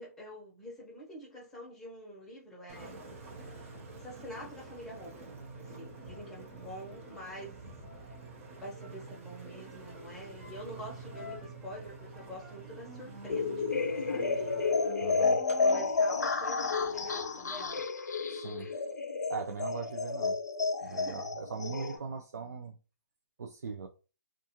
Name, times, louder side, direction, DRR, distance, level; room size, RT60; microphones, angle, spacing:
voice 1, 0.0-3.0 3.3-5.1 5.6-7.6 8.1-8.2 8.6-14.6 15.0-17.9 18.6-18.8 20.8-21.3, equal, 5° left, 0.7 m, -46 dB
Engine, 2.7-17.7, right 3 dB, 50° right, 0.9 m, -47 dB
sound 1, 13.3-22.0, left 4 dB, 85° left, 0.6 m, -31 dB
voice 2, 15.0-15.4 18.3-18.7 19.3-20.4 20.8-22.8 23.4-23.9, right 5 dB, 80° right, 0.4 m, -40 dB
2.4 x 2.4 x 2.8 m
hypercardioid pair, 160°, 9 cm